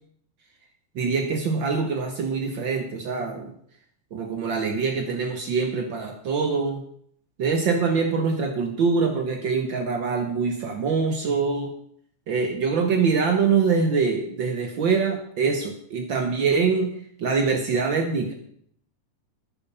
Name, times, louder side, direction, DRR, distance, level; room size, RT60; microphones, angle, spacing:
voice 1, 0.9-3.5 4.1-6.8 7.4-11.7 12.3-18.3, right 5 dB, 85° right, 4 dB, 1.0 m, -24 dB
10.0 x 9.7 x 5.6 m, 0.66 s
omnidirectional pair, 3.7 m